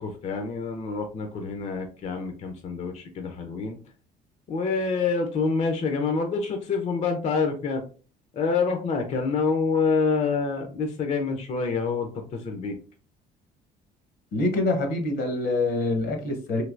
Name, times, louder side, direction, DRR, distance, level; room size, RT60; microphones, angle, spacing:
voice 1, 0.0-3.8 4.5-7.8 8.3-12.7, left 4 dB, 40° left, 4 dB, 0.5 m, -27 dB
voice 2, 14.3-16.6, left 2 dB, 70° left, 4 dB, 0.9 m, -25 dB
3.2 x 2.7 x 2.5 m, 0.38 s
cardioid pair, 110°, 17 cm